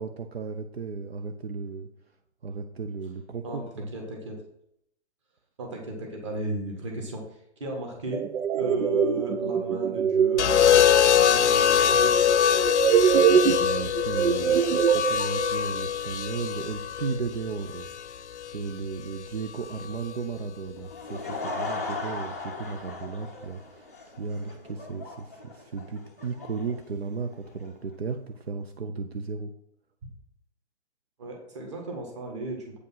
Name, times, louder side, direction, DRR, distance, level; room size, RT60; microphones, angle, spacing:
voice 1, 0.0-1.9 2.4-3.9 12.9-13.0 13.5-17.9 18.5-23.9 24.2-29.5, right 4 dB, 60° right, 7 dB, 0.8 m, -35 dB
voice 2, 3.4-4.4 5.6-7.3 7.6-8.3 8.6-12.3 31.2-32.8, right 1 dB, 25° right, 2 dB, 1.6 m, -35 dB
sound 1, 8.1-15.5, right 8 dB, 90° right, 0.7 m, -24 dB
sound 2, 10.4-18.5 19.8-20.1, left 9 dB, 80° left, 0.7 m, -23 dB
Laughter / Crowd, 20.8-27.7, left 3 dB, 15° left, 0.5 m, -37 dB
8.3 x 5.2 x 5.5 m, 0.75 s
hypercardioid pair, 175°, 34 cm